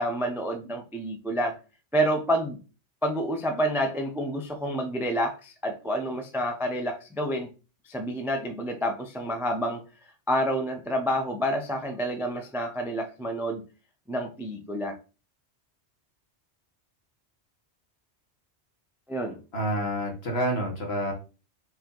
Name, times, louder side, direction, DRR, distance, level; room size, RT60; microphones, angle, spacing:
voice 1, 0.0-1.6 1.9-2.6 3.0-7.5 7.8-9.8 10.3-13.6 14.1-15.0 19.1-19.4, equal, 5° right, 0.3 m, -28 dB
voice 2, 19.5-21.1, equal, 65° left, 1.5 m, -28 dB
4.7 x 2.7 x 3.8 m
omnidirectional pair, 1.2 m